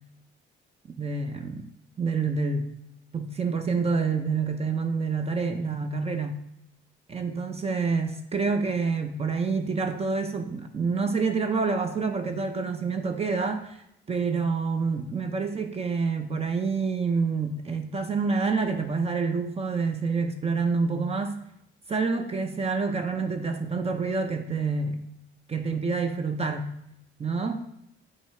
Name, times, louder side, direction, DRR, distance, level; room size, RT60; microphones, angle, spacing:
voice 1, 1.0-1.7 2.0-2.6 3.1-6.3 7.1-21.4 21.9-25.0 25.5-26.7 27.2-27.6, right 4 dB, 30° right, 6 dB, 0.6 m, -27 dB
7.7 x 2.8 x 4.5 m, 0.80 s
cardioid pair, 90°, 20 cm